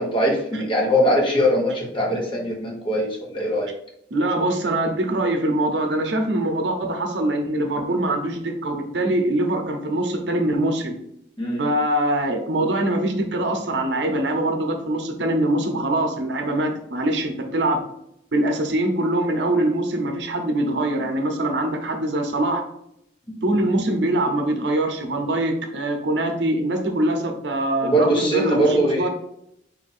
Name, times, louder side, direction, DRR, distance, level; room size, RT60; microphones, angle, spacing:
voice 1, 0.0-3.7 11.4-11.6 23.3-23.4 27.8-29.1, equal, 30° left, -2 dB, 1.1 m, -21 dB
voice 2, 4.1-10.9 11.6-17.8 18.3-22.6 23.4-29.1, right 1 dB, 70° right, 4 dB, 0.7 m, -23 dB
4.1 x 2.6 x 4.1 m, 0.75 s
head